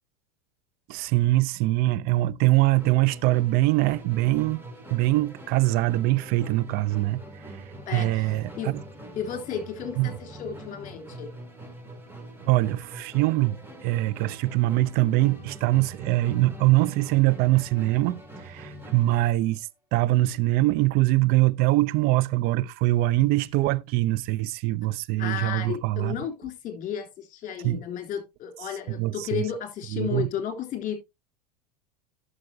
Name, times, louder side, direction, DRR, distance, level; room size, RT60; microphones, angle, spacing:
voice 1, 0.9-4.6 4.9-7.2 7.9-8.8 10.0-10.1 12.4-26.2 27.6-27.8 29.0-29.4 29.9-30.3, right 18 dB, 50° right, 0.6 m, -23 dB
Musical instrument, 2.8-19.4, right 1 dB, 10° right, 2.9 m, -43 dB
voice 2, 7.9-8.7 9.1-11.3 25.2-30.9, left 8 dB, 40° left, 3.3 m, -33 dB
12.0 x 6.4 x 2.8 m
hypercardioid pair, 90°, 20 cm